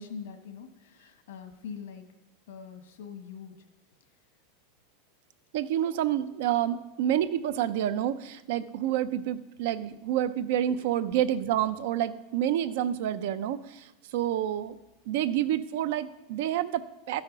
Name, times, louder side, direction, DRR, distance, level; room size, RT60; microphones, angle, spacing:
voice 1, 0.0-2.0 2.5-3.5 11.1-11.2, left 6 dB, 90° left, 6 dB, 1.4 m, -43 dB
voice 2, 5.5-14.7 15.1-17.2, right 11 dB, 60° right, 13 dB, 0.6 m, -28 dB
13.0 x 5.7 x 5.4 m, 0.97 s
supercardioid pair, 165°, 0 cm